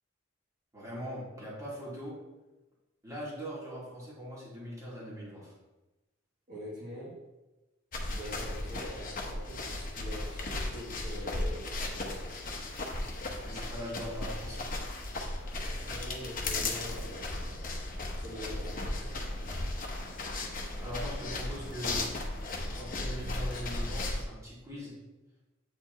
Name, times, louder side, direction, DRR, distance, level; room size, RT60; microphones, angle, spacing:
voice 1, 0.7-2.1 3.0-5.5 13.4-14.7 20.8-22.1 22.7-24.9, equal, 15° right, -7 dB, 2.3 m, -41 dB
voice 2, 6.5-7.2 7.9-12.6 15.9-17.6 18.2-19.3, left 1 dB, 40° right, -8 dB, 1.5 m, -44 dB
sound 1, 7.9-24.2, left 2 dB, 45° left, 0.8 m, -36 dB
8.4 x 4.4 x 3.0 m, 1.1 s
head